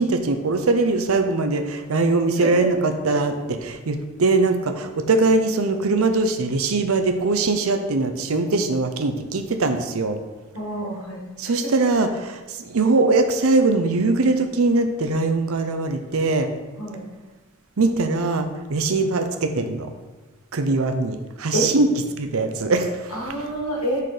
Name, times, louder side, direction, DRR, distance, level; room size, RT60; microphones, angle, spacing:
voice 1, 0.0-10.2 11.4-16.5 17.8-19.9 20.5-21.9 22.2-23.1, right 3 dB, 75° right, 7 dB, 0.6 m, -21 dB
voice 2, 2.4-2.7 3.1-3.2 10.5-11.7 16.8-17.0 21.5-21.7 23.1-24.0, equal, 85° left, -2 dB, 1.9 m, -28 dB
6.3 x 4.2 x 5.0 m, 1.2 s
head